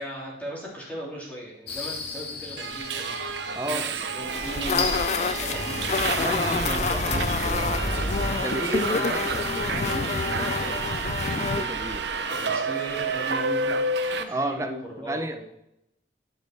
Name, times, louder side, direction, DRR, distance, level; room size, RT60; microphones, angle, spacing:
voice 1, 0.0-3.1 3.5-6.0 12.3-15.4, right 1 dB, 10° left, -5 dB, 2.8 m, -37 dB
sound 1, 1.7-8.4, left 1 dB, 70° left, 1.8 m, -34 dB
Subway metro underground, 2.6-14.2, right 4 dB, 80° right, 0.7 m, -30 dB
voice 2, 3.5-3.8 6.2-8.0 8.4-10.9 11.2-12.1 12.5-12.6 14.3-15.4, right 1 dB, 15° right, 7 dB, 0.6 m, -33 dB
sound 2, 4.3-11.7, left 5 dB, 40° left, 0.3 m, -28 dB
11.5 x 5.3 x 4.3 m, 0.82 s
head